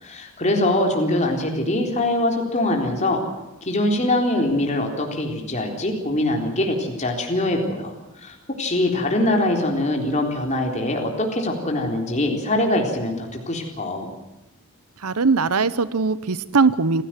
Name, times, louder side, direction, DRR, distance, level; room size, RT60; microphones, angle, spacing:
voice 1, 0.0-3.2 3.6-7.9 8.2-14.1, left 1 dB, 30° left, 2 dB, 3.8 m, -23 dB
voice 2, 15.0-17.0, right 4 dB, 85° right, 15 dB, 0.9 m, -20 dB
27.5 x 16.5 x 7.6 m, 1.0 s
head